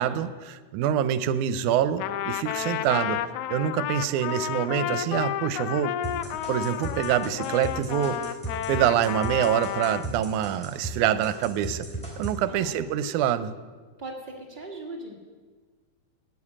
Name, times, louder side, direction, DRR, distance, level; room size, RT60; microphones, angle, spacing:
voice 1, 0.0-3.2 3.5-6.0 6.5-8.4 8.7-11.9 12.2-13.5, right 10 dB, 80° right, 14 dB, 2.0 m, -25 dB
Trumpet, 2.0-10.1, left 11 dB, 80° left, 1.9 m, -31 dB
sound 1, 6.0-11.0 11.2-12.4, right 2 dB, ahead, 2.9 m, -35 dB
voice 2, 12.5-12.8 14.0-15.1, right 2 dB, 60° right, 1 dB, 0.5 m, -39 dB
9.6 x 9.5 x 8.6 m, 1.4 s
omnidirectional pair, 3.6 m